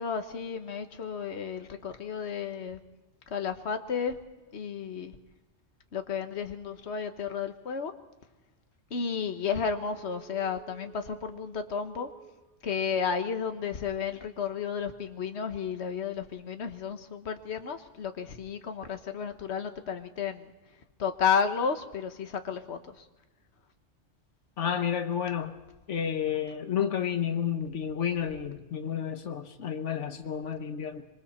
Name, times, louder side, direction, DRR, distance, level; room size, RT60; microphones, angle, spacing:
voice 1, 0.0-2.8 3.3-4.2 4.5-5.1 5.9-7.9 8.9-12.1 12.6-20.5 21.0-22.8, left 6 dB, 70° left, 7 dB, 1.5 m, -32 dB
Telephone, 9.3-12.5 12.9-13.0, right 8 dB, 35° left, 3.6 m, -51 dB
voice 2, 24.6-25.6 25.9-31.0, left 8 dB, 85° left, 7 dB, 1.4 m, -31 dB
26.0 x 24.0 x 4.4 m, 1.1 s
omnidirectional pair, 1.2 m